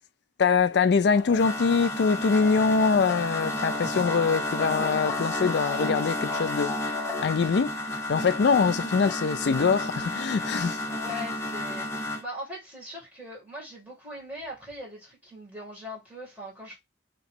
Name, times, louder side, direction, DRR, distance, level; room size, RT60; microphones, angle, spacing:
voice 1, 0.4-10.9, left 5 dB, 70° left, 0.4 m, -24 dB
sound 1, 1.1-12.2, left 2 dB, 15° left, 0.7 m, -31 dB
voice 2, 10.9-16.8, left 1 dB, 10° right, 1.9 m, -40 dB
3.0 x 2.9 x 4.3 m
head